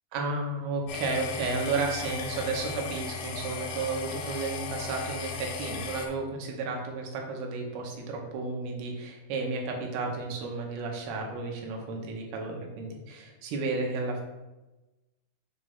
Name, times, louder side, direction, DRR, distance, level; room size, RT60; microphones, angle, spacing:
voice 1, 0.1-14.2, right 3 dB, 85° right, 1 dB, 3.0 m, -32 dB
sound 1, 0.9-6.1, left 5 dB, 75° left, 2.2 m, -37 dB
6.3 x 3.3 x 5.4 m, 1.1 s
omnidirectional pair, 4.4 m